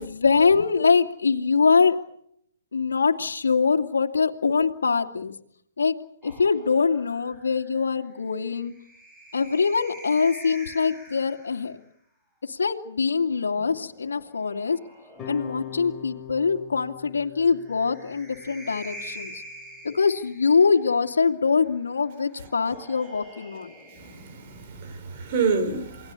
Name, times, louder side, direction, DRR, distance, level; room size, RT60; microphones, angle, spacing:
voice 1, 0.0-2.0 2.7-5.3 5.8-5.9 6.2-8.7 9.3-11.8 12.4-14.8 15.3-19.4 19.8-23.7, left 5 dB, 90° left, 2.5 m, -23 dB
sound 1, 6.2-11.8 13.1-16.1 17.5-20.9 22.2-25.1, right 1 dB, 5° right, 5.0 m, -46 dB
sound 2, 15.2-20.3, left 10 dB, 15° left, 6.8 m, -42 dB
voice 2, 24.0-26.1, right 5 dB, 40° right, 5.7 m, -28 dB
28.5 x 19.5 x 8.4 m
hypercardioid pair, 150°, 0 cm